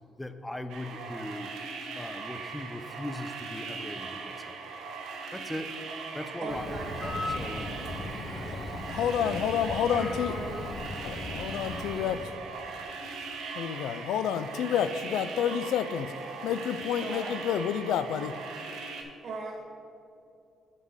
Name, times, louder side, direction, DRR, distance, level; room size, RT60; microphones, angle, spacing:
voice 1, 0.2-1.5 1.9-4.6 5.3-5.7 6.1-7.8 8.1-8.2, left 1 dB, 10° left, 9 dB, 0.6 m, -39 dB
sound 1, 0.7-19.0, right 4 dB, 85° right, 1.1 m, -40 dB
voice 2, 6.4-8.6 9.2-9.3 9.6-10.7 12.0-12.1 17.0-17.3 19.2-19.6, right 3 dB, 60° right, -4 dB, 1.1 m, -40 dB
Bird, 6.5-12.3, left 2 dB, 40° left, 1.1 m, -38 dB
voice 3, 8.9-10.3 11.0-12.2 13.5-18.4, left 8 dB, 85° left, 13 dB, 0.3 m, -29 dB
7.4 x 5.0 x 6.4 m, 2.5 s
cardioid pair, 90°, 0 cm